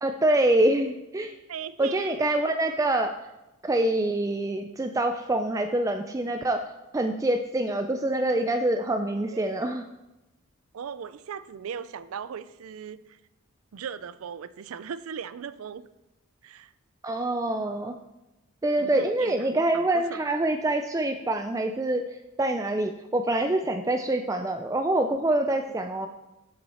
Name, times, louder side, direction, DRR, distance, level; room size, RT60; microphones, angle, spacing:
voice 1, 0.0-1.3 1.8-3.3 3.6-6.7 6.9-9.9 17.0-17.9 18.6-26.1, right 1 dB, 15° right, 6 dB, 0.3 m, -25 dB
voice 2, 1.5-2.4 9.3-9.5 10.7-13.2 13.7-15.9 16.4-16.7 18.8-19.4 19.7-20.2, right 7 dB, 85° right, 15 dB, 0.4 m, -38 dB
9.2 x 7.7 x 4.2 m, 0.98 s
head